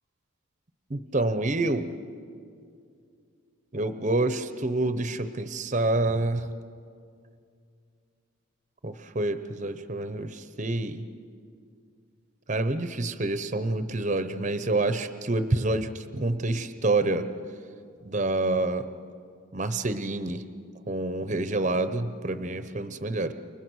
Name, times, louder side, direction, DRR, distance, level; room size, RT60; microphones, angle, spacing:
voice 1, 0.9-1.9 3.7-6.5 8.8-11.1 12.5-17.3 18.0-18.9 19.5-20.4 20.9-23.3, right 2 dB, 35° right, 11 dB, 0.8 m, -27 dB
29.0 x 23.5 x 6.3 m, 2.3 s
head